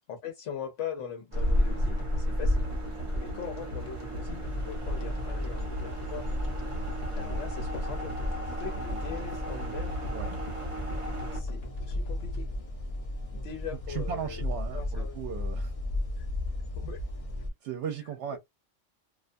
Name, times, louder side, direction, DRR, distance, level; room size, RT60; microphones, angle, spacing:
voice 1, 0.1-2.7 3.2-6.3 7.1-8.2 8.5-10.0 11.3-12.5 13.3-14.4 14.7-15.2 16.2-16.3 16.8-17.0, left 7 dB, 85° left, 1.0 m, -41 dB
sound 1, 1.3-11.4, equal, 35° right, 0.6 m, -33 dB
sound 2, 1.4-13.7, left 2 dB, 65° left, 1.1 m, -41 dB
sound 3, 4.4-17.5, left 1 dB, 40° left, 0.5 m, -36 dB
voice 2, 13.9-15.7 17.6-18.4, right 8 dB, 75° right, 0.8 m, -36 dB
2.4 x 2.2 x 2.5 m
omnidirectional pair, 1.2 m